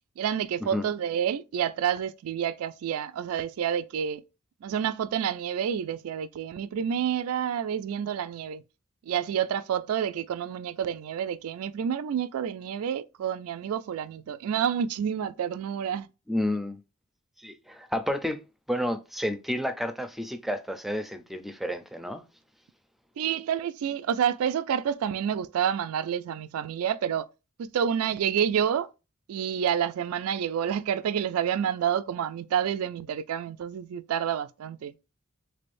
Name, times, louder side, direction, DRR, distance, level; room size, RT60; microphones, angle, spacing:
voice 1, 0.2-4.2 4.6-8.6 9.0-16.1 23.2-27.3 27.6-28.9 29.3-34.9, right 8 dB, 80° right, 0.3 m, -29 dB
voice 2, 16.3-16.8 17.4-18.4 18.7-22.2, left 1 dB, ahead, 0.4 m, -30 dB
3.8 x 3.3 x 2.5 m
head